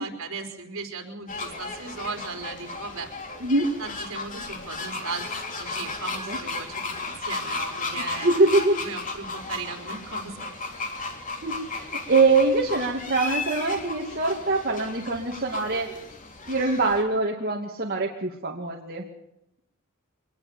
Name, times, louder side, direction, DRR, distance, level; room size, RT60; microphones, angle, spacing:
voice 1, 0.0-3.1 3.8-8.4 8.8-10.5, right 4 dB, 70° right, 3 dB, 4.5 m, -37 dB
sound 1, 1.3-17.0, left 3 dB, 40° left, 3.3 m, -34 dB
voice 2, 3.4-3.7 6.3-6.4 8.0-8.8 11.4-15.9 16.5-19.0, right 3 dB, 45° right, -2 dB, 2.6 m, -23 dB
24.0 x 20.0 x 7.2 m, 0.81 s
head